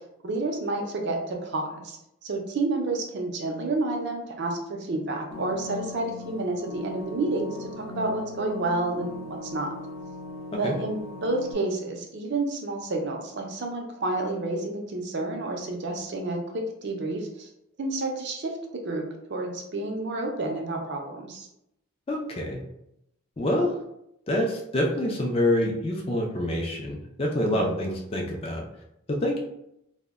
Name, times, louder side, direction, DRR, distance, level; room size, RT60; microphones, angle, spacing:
voice 1, 0.2-9.7 10.6-17.5 17.8-18.6 18.8-19.0 19.3-21.5 27.4-27.7, right 2 dB, 50° right, 2 dB, 0.5 m, -30 dB
sound 1, 5.3-11.5, left 2 dB, 70° left, 0.7 m, -39 dB
voice 2, 22.1-22.6 23.4-23.7 24.3-28.6 29.1-29.4, left 1 dB, 25° left, -1 dB, 0.4 m, -26 dB
2.1 x 2.1 x 3.4 m, 0.81 s
head